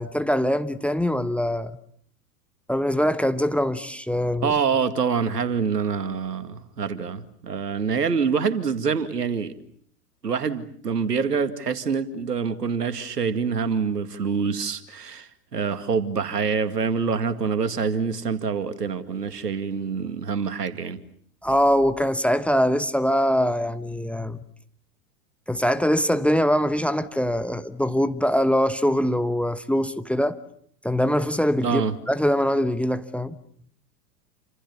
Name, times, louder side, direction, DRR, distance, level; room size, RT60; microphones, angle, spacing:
voice 1, 0.0-1.7 2.7-4.5 21.4-24.4 25.5-30.4 30.8-31.8 32.1-33.4, equal, 5° left, 1.1 m, -23 dB
voice 2, 4.4-9.5 10.2-21.0 31.6-31.9, right 5 dB, 90° right, 2.3 m, -26 dB
28.5 x 27.0 x 7.1 m
hypercardioid pair, 100°, 46 cm